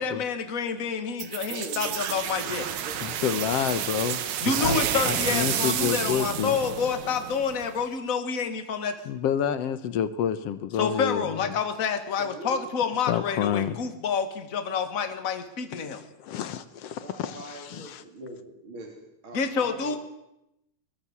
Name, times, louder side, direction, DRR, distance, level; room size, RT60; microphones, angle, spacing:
voice 1, 0.0-2.7 4.4-9.0 10.8-16.0 19.3-20.0, left 6 dB, 35° left, 8 dB, 1.5 m, -28 dB
sound 1, 1.2-7.8, right 9 dB, 65° right, 2.5 m, -30 dB
voice 2, 1.4-3.5 12.2-12.6 17.0-20.0, right 1 dB, 40° right, 1 dB, 3.7 m, -43 dB
voice 3, 3.0-4.2 4.6-4.8 5.0-6.6 9.0-11.6 13.1-13.8 15.8-18.0, left 9 dB, 65° left, 12 dB, 1.8 m, -29 dB
22.0 x 21.0 x 7.3 m, 0.88 s
omnidirectional pair, 3.8 m